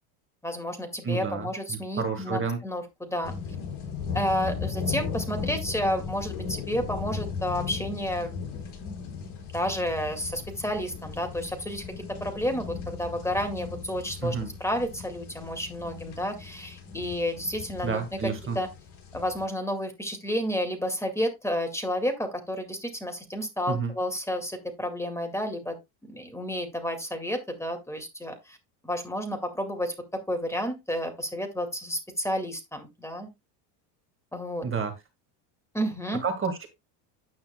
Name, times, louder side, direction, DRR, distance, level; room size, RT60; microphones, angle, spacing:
voice 1, 0.4-3.3 4.1-8.7 9.5-18.7 19.1-25.8 26.0-28.6 28.8-33.3 34.3-34.7 35.7-36.2, equal, 5° left, 5 dB, 2.1 m, -31 dB
voice 2, 1.0-2.6 14.2-14.5 17.8-18.6 23.7-23.9 34.6-34.9 36.2-36.7, right 5 dB, 25° right, 7 dB, 1.8 m, -30 dB
sound 1, 3.2-19.4, left 6 dB, 50° left, 5.6 m, -37 dB
9.6 x 8.7 x 2.2 m, 0.21 s
supercardioid pair, 115°, 49 cm